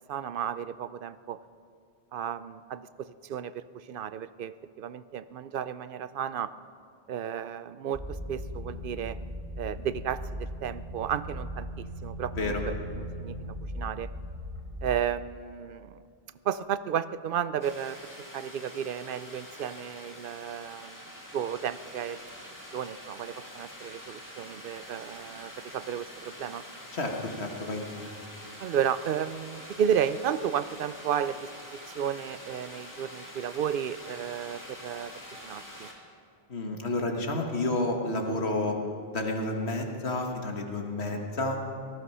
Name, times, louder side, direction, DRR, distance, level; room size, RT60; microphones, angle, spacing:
voice 1, 0.1-1.4 2.1-6.5 7.1-9.2 9.6-14.1 14.8-16.0 16.4-18.0 18.3-22.3 22.7-26.6 28.6-35.9, right 9 dB, 65° right, 15 dB, 0.7 m, -33 dB
sound 1, 7.9-15.0, equal, 30° right, 1.7 m, -38 dB
sound 2, 17.6-35.9, equal, 15° left, 2.2 m, -46 dB
voice 2, 26.9-28.1 36.5-38.8 39.1-41.6, left 2 dB, 80° left, 2 dB, 1.8 m, -30 dB
18.5 x 14.0 x 5.5 m, 2.3 s
omnidirectional pair, 1.1 m